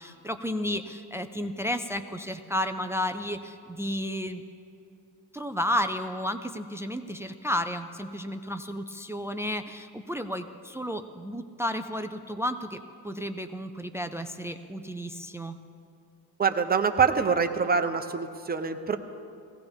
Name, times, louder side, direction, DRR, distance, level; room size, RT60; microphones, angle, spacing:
voice 1, 0.0-4.4 5.3-15.6, equal, 5° right, 8 dB, 0.4 m, -32 dB
voice 2, 16.4-19.0, right 5 dB, 25° right, 7 dB, 0.8 m, -25 dB
19.5 x 16.5 x 3.5 m, 2.7 s
cardioid pair, 130°, 40 cm